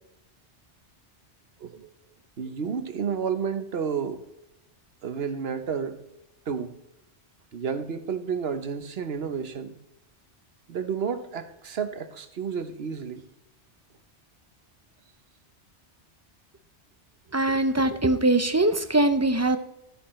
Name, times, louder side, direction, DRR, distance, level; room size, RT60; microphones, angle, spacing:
voice 1, 1.6-1.9 2.4-4.2 5.0-6.0 6.5-6.7 7.5-9.8 10.7-13.3, right 6 dB, 60° right, 1.1 m, -31 dB
voice 2, 17.3-19.6, right 2 dB, 25° right, 0.4 m, -22 dB
13.5 x 8.7 x 3.1 m
omnidirectional pair, 1.2 m